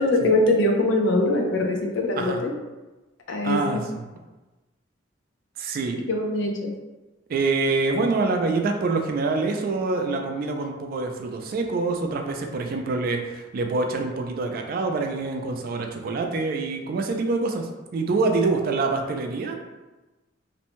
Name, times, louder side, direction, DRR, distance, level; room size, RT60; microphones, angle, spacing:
voice 1, 0.0-2.5 3.3-3.8 6.1-6.7, left 2 dB, 75° left, 2 dB, 0.5 m, -22 dB
voice 2, 3.4-3.8 5.6-6.0 7.3-19.6, right 3 dB, 50° right, 4 dB, 0.3 m, -25 dB
2.6 x 2.1 x 2.9 m, 1.1 s
head